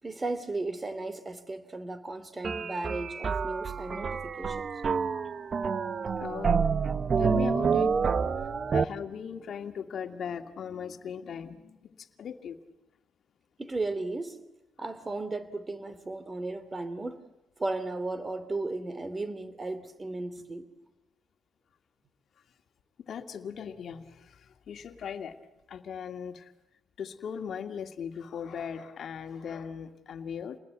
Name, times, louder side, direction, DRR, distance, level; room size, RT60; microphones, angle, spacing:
voice 1, 0.0-4.7 6.9-7.0 8.5-8.8 13.6-14.4 14.8-17.2 17.6-20.7, right 2 dB, 25° right, 12 dB, 2.9 m, -35 dB
sound 1, 2.4-8.8, right 5 dB, 45° right, 1.0 m, -28 dB
voice 2, 6.2-6.7 7.2-8.0 8.4-12.6 23.0-25.4 25.7-26.5 27.0-30.6, left 7 dB, 60° left, 7 dB, 2.0 m, -38 dB
28.5 x 20.0 x 9.3 m, 1.0 s
cardioid pair, 80°, 0 cm